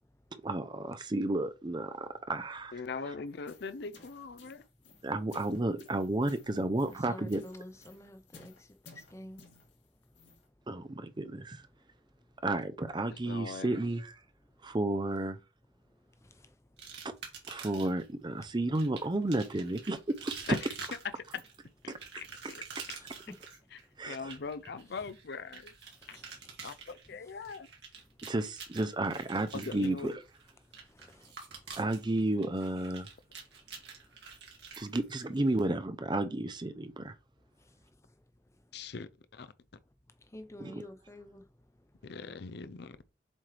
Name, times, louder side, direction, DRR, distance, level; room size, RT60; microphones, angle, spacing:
voice 1, 0.3-2.8 5.0-7.4 10.7-11.7 12.4-14.2 14.6-15.4 17.5-20.6 21.9-22.2 22.8-22.9 24.0-24.3 28.2-30.1 31.8-33.1 34.8-37.1 40.6-40.8, right 2 dB, 25° right, 0.6 m, -32 dB
voice 2, 2.7-4.6 13.1-13.8 20.5-20.6 21.3-21.4 21.8-23.0 24.1-25.7 26.1-26.2 26.6-27.7 29.5-30.2 38.7-39.5 42.0-43.0, left 4 dB, 60° left, 0.5 m, -41 dB
sound 1, 3.3-10.5, left 4 dB, 90° left, 2.6 m, -58 dB
voice 3, 6.9-9.4 22.9-23.1 26.1-26.2 31.0-31.3 40.3-41.4, left 1 dB, 15° left, 0.8 m, -49 dB
sound 2, 16.8-18.1 18.7-35.6, right 6 dB, 65° right, 2.3 m, -48 dB
7.5 x 4.5 x 3.3 m
head